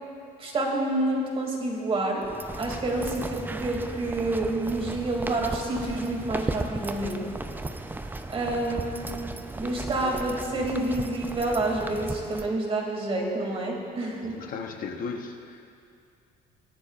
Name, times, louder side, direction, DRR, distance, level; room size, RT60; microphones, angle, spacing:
voice 1, 0.4-2.2 2.6-7.2 8.3-9.0 9.5-14.4, right 2 dB, 35° right, 0 dB, 2.5 m, -28 dB
sound 1, 2.2-12.5, right 2 dB, 10° right, 0.5 m, -35 dB
voice 2, 14.2-15.7, left 5 dB, 55° left, 4 dB, 0.9 m, -36 dB
21.0 x 11.5 x 2.5 m, 2.5 s
cardioid pair, 110°, 17 cm